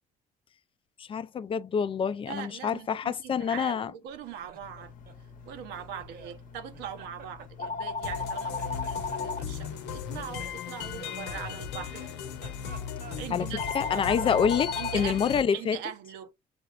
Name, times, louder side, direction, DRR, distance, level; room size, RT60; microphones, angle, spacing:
voice 1, 1.0-3.9 13.3-13.5 13.7-15.8, left 7 dB, 30° left, 0.4 m, -27 dB
voice 2, 2.3-4.9 5.4-12.1 13.2-14.4 14.8-16.3, right 9 dB, 90° right, 0.8 m, -41 dB
Laughter, 4.1-6.4 6.7-8.3 8.5-9.7 10.4-13.5 13.8-15.7, right 7 dB, 65° right, 1.0 m, -50 dB
sound 1, 4.6-15.0, left 4 dB, 50° left, 0.8 m, -38 dB
sound 2, 8.0-15.4, left 8 dB, 80° left, 0.8 m, -37 dB
6.9 x 3.1 x 2.4 m
cardioid pair, 110°, 17 cm